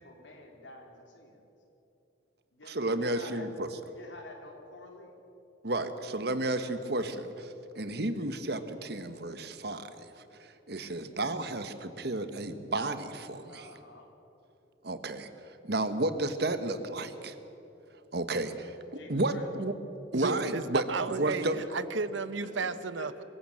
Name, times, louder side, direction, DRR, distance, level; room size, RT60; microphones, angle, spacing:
voice 1, 0.0-1.4 2.5-3.5 3.9-5.1 13.5-14.1 18.9-19.5 21.4-21.7 22.4-23.1, left 2 dB, 75° left, 2 dB, 3.7 m, -49 dB
voice 2, 2.7-3.7 5.6-13.7 14.8-17.3 18.1-19.7 20.1-21.5, right 2 dB, 55° right, 10 dB, 1.3 m, -32 dB
voice 3, 20.1-23.2, right 4 dB, 80° right, 14 dB, 0.9 m, -33 dB
24.5 x 15.5 x 7.6 m, 3.0 s
head